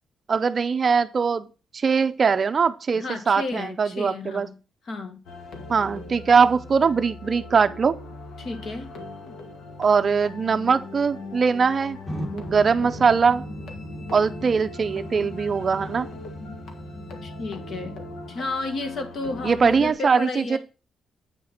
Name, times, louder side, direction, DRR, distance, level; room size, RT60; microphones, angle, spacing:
voice 1, 0.3-1.5 1.7-4.5 5.7-8.0 9.8-12.0 12.3-13.4 14.1-16.1 19.4-20.6, right 5 dB, 35° right, 0.5 m, -21 dB
voice 2, 2.9-4.6 4.8-5.2 8.4-8.9 17.2-18.0 18.3-20.6, left 3 dB, 55° left, 1.8 m, -32 dB
sound 1, 5.3-19.9, left 3 dB, 75° left, 2.0 m, -41 dB
sound 2, 12.0-18.3, equal, 20° left, 2.2 m, -38 dB
8.7 x 6.3 x 4.4 m
cardioid pair, 150°, 0 cm